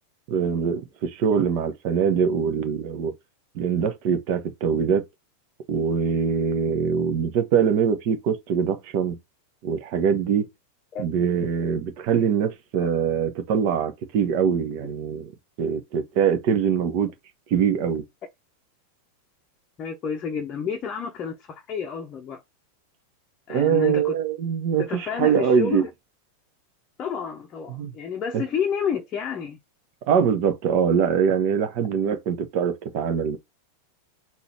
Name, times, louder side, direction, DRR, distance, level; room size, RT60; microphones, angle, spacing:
voice 1, 0.3-3.1 3.5-5.0 5.7-9.2 9.6-10.5 11.0-15.3 15.6-17.1 17.5-18.0 23.5-25.8 27.7-27.9 28.3-28.4 30.1-33.4, right 7 dB, 45° right, 1.0 m, -23 dB
voice 2, 19.8-22.4 23.5-24.2 24.8-25.9 27.0-29.6, left 7 dB, 30° left, 0.7 m, -30 dB
4.0 x 2.8 x 4.4 m
figure-of-eight pair, 90°, 0 cm